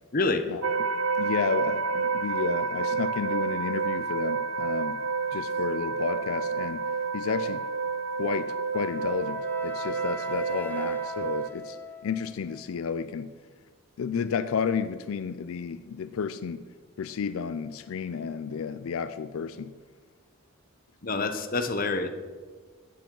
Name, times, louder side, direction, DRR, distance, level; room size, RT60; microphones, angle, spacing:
voice 1, 0.1-0.5 21.0-22.1, left 3 dB, 40° left, 8 dB, 0.8 m, -27 dB
sound 1, 0.6-11.5, right 5 dB, 85° right, 0.6 m, -29 dB
voice 2, 1.2-5.0 5.3-6.8 7.1-7.7 8.2-11.8 12.0-13.3 14.0-16.6 17.0-19.7, left 6 dB, 80° left, 12 dB, 0.4 m, -32 dB
Wind instrument woodwind instrument, 8.7-12.8, left 2 dB, 10° left, 0.4 m, -41 dB
11.5 x 9.2 x 3.8 m, 1.5 s
head